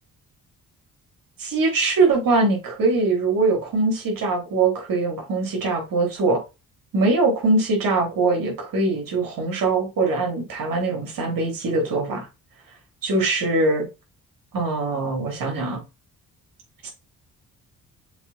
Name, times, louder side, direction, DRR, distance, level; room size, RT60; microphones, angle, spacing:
voice 1, 1.4-6.4 6.9-12.3 13.0-13.9 14.5-15.8 16.8-16.9, right 3 dB, 70° right, 3.5 m, -22 dB
7.1 x 4.1 x 4.2 m
cardioid pair, 65°, 34 cm